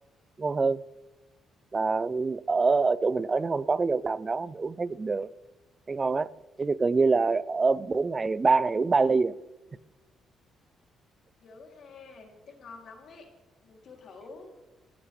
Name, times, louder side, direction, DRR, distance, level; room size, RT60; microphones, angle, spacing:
voice 1, 0.4-0.8 1.7-5.3 5.9-6.3 6.6-9.3, right 4 dB, 30° right, 0.5 m, -25 dB
voice 2, 11.4-13.3 13.6-14.5, left 4 dB, 65° left, 3.2 m, -48 dB
27.0 x 10.5 x 3.4 m
cardioid pair, 90°, 0 cm